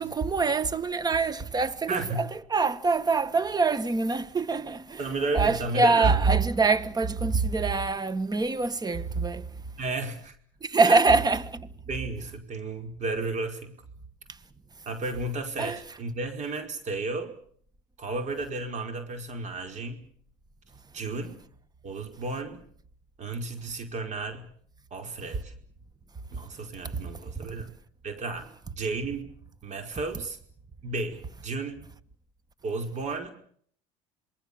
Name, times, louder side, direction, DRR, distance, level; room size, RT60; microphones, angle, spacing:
voice 1, 0.0-5.0 5.3-9.5 10.6-11.7 15.6-15.8 26.9-27.0, right 4 dB, 25° right, 1.8 m, -24 dB
voice 2, 1.9-2.2 5.0-6.2 9.8-10.4 10.9-11.0 11.9-13.7 14.8-17.3 18.0-20.0 20.9-21.4 21.8-22.6 23.2-24.5 24.9-25.5 26.3-27.7 28.0-29.3 29.6-30.4 30.8-31.8 32.6-33.3, right 3 dB, 45° right, 5.2 m, -33 dB
27.5 x 21.5 x 7.1 m
supercardioid pair, 85°, 17 cm